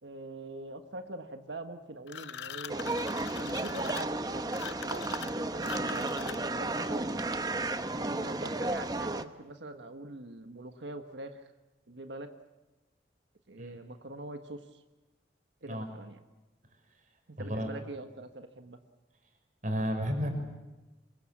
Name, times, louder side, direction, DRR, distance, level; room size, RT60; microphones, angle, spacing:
voice 1, 0.0-7.1 7.9-11.4 11.9-12.3 13.5-14.8 15.6-16.2 17.3-18.8, right 2 dB, 80° right, 7 dB, 1.4 m, -44 dB
sound 1, 2.1-6.7, left 8 dB, 80° left, 0.7 m, -43 dB
sound 2, 2.7-9.2, right 2 dB, 20° right, 0.9 m, -33 dB
voice 2, 17.4-17.7 19.6-20.3, equal, 45° right, 5 dB, 5.6 m, -32 dB
26.5 x 22.0 x 7.4 m, 1.1 s
head